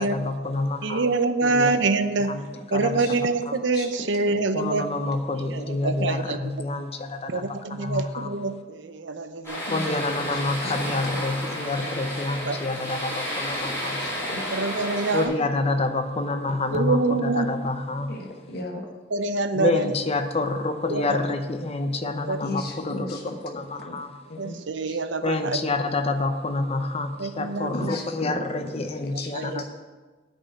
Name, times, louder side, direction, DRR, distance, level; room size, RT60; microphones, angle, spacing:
voice 1, 0.0-1.0 1.4-1.7 2.3-2.5 2.7-3.0 3.5-3.6 4.5-8.3 9.7-14.1 15.1-18.2 19.5-23.2 23.4-24.1 25.2-29.6, left 2 dB, 35° left, 7 dB, 0.8 m, -28 dB
voice 2, 0.8-2.3 2.7-4.9 5.4-6.4 7.3-9.7 12.5-13.0 14.5-15.3 16.7-17.5 19.1-19.9 20.9-21.2 22.0-22.4 24.4-25.6 27.2-27.9 29.3-29.6, right 3 dB, 75° right, 10 dB, 0.7 m, -26 dB
sound 1, 9.4-15.3, equal, 15° left, 3.7 m, -31 dB
voice 3, 9.6-10.4 14.0-14.6 18.1-18.9 22.4-24.0 24.3-24.6 24.9-25.0 27.7-29.3, left 2 dB, 60° left, 0 dB, 1.2 m, -36 dB
9.3 x 5.4 x 7.6 m, 1.3 s
head